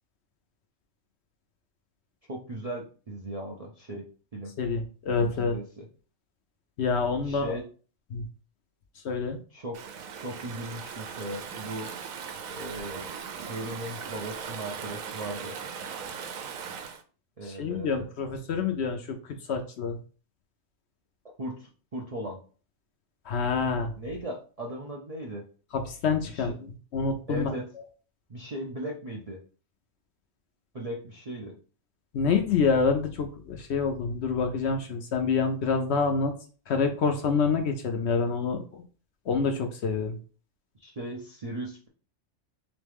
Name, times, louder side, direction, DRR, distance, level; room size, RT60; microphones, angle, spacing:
voice 1, 2.3-4.1 4.3-4.5 5.2-5.9 7.2-7.6 9.5-9.8 10.1-11.9 12.5-13.1 13.5-15.6 17.4-18.0 21.4-22.4 24.0-25.4 26.2-26.5 27.3-27.7 28.3-29.4 30.7-31.6 40.7-41.9, right 1 dB, 50° right, -1 dB, 0.4 m, -37 dB
voice 2, 4.6-5.6 6.8-7.6 8.1-8.3 9.0-9.4 17.4-19.2 19.5-20.0 23.3-23.9 25.7-26.5 26.9-27.5 32.1-36.3 36.7-38.8 39.3-40.2, left 5 dB, 65° left, 5 dB, 0.8 m, -27 dB
Stream / Ocean, 9.7-17.0, right 7 dB, 80° right, 1.0 m, -39 dB
3.6 x 3.1 x 3.4 m, 0.38 s
omnidirectional pair, 1.4 m